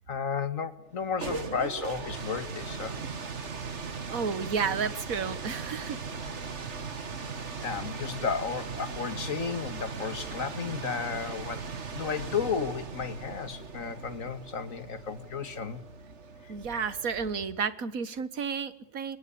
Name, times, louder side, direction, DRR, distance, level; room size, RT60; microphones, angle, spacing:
voice 1, 0.1-3.0 7.6-11.6 11.9-15.8 16.4-16.5, left 6 dB, 60° left, 12 dB, 2.3 m, -33 dB
sound 1, 0.9-17.6, right 5 dB, 50° right, 2.0 m, -39 dB
voice 2, 4.1-6.0 16.5-19.2, right 6 dB, 65° right, 15 dB, 1.9 m, -31 dB
26.0 x 22.0 x 8.7 m, 0.67 s
omnidirectional pair, 1.6 m